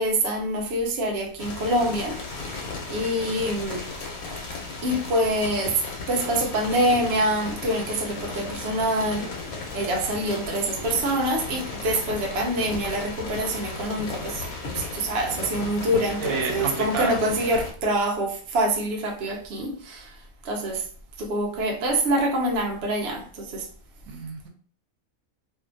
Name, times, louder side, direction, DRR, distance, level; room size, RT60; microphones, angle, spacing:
voice 1, 0.0-3.8 4.8-5.8 6.1-9.3 9.7-14.4 14.7-20.1 20.4-20.8 21.2-23.7, right 1 dB, 60° right, 0.8 m, -25 dB
sound 1, 1.4-17.7, left 3 dB, 85° left, 1.2 m, -36 dB
sound 2, 5.6-6.0 6.3-6.6 6.9-7.2 7.5-7.7 8.1-8.4 8.8-9.0 9.4-9.7 10.1-10.4 10.8-11.0 11.5-11.7 12.1-12.4 12.7-12.9 13.3-13.6 14.0-14.3 14.6-14.9 15.3-15.6 15.9-16.2 16.6-16.8 17.2-17.4, left 1 dB, 65° left, 1.1 m, -40 dB
voice 2, 16.2-17.1 24.1-24.5, right 4 dB, 80° right, 1.1 m, -29 dB
2.7 x 2.4 x 2.5 m
omnidirectional pair, 1.5 m